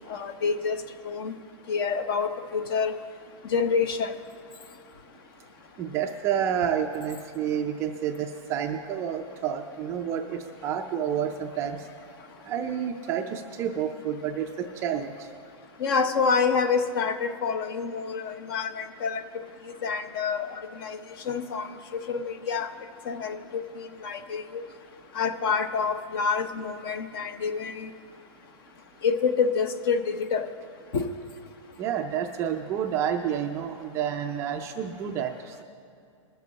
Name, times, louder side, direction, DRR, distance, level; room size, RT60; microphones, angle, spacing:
voice 1, 0.1-0.8 1.0-1.3 1.7-3.0 3.4-4.1 15.8-19.2 19.8-21.0 21.2-22.7 23.0-24.6 25.1-27.9 29.0-30.5 30.9-31.1, left 5 dB, 45° left, 9 dB, 0.9 m, -27 dB
voice 2, 5.8-11.8 12.4-15.3 31.8-35.6, right 8 dB, 15° right, 4 dB, 0.4 m, -29 dB
21.5 x 7.4 x 4.0 m, 2.5 s
hypercardioid pair, 165°, 17 cm